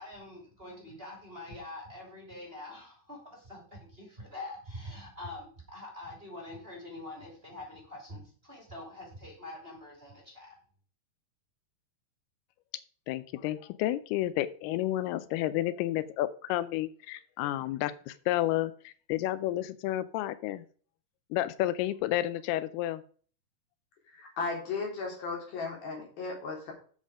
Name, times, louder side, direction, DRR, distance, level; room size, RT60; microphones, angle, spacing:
voice 1, 0.0-10.5, left 2 dB, 15° right, -1 dB, 2.8 m, -45 dB
voice 2, 13.1-20.6 21.3-23.0, left 14 dB, 90° left, 14 dB, 2.6 m, -31 dB
voice 3, 24.1-26.7, left 4 dB, 70° left, -1 dB, 5.1 m, -35 dB
8.6 x 7.5 x 4.9 m, 0.44 s
omnidirectional pair, 4.4 m